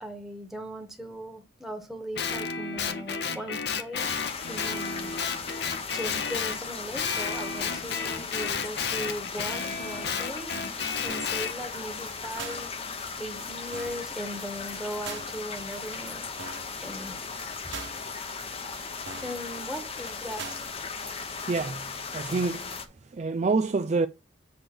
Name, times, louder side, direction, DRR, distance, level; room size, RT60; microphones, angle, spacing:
voice 1, 0.0-5.2 5.6-12.7 13.2-17.2 17.6-17.7 19.2-20.5, equal, ahead, 1.3 m, -39 dB
Guitar, 2.2-6.6 7.0-11.5, left 6 dB, 60° left, 0.8 m, -32 dB
sound 1, 4.0-22.9, left 5 dB, 30° left, 0.8 m, -37 dB
sound 2, 11.1-11.4 11.7-11.8 12.1-12.2 12.4-12.7 13.1-13.2 13.4-13.5 13.7-14.1 14.4-14.5 14.7-14.8 15.1-15.4 15.7-15.8 16.1-16.2 16.4-16.7 17.1-17.2 17.4-17.5 17.7-18.1 18.4-18.5 18.7-18.8 19.1-19.4 19.7-19.8 20.1-20.2 20.4-20.7 21.1-21.2 21.4-21.5, right 5 dB, 80° right, 1.2 m, -42 dB
voice 2, 21.5-24.1, right 3 dB, 35° right, 0.4 m, -28 dB
7.8 x 3.3 x 6.1 m
head